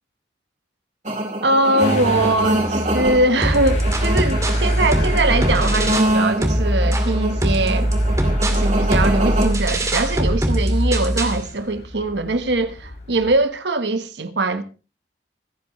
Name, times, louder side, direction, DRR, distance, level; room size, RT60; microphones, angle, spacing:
sound 1, 1.0-9.5, right 1 dB, 45° right, 4.5 m, -25 dB
voice 1, 1.4-7.9 8.5-14.6, right 2 dB, 85° right, 1.4 m, -21 dB
Motor vehicle (road) / Engine starting, 1.8-13.4, left 1 dB, 40° left, 3.2 m, -33 dB
sound 2, 3.4-6.2 6.4-11.4, right 1 dB, 20° right, 2.4 m, -21 dB
26.0 x 9.6 x 3.2 m
head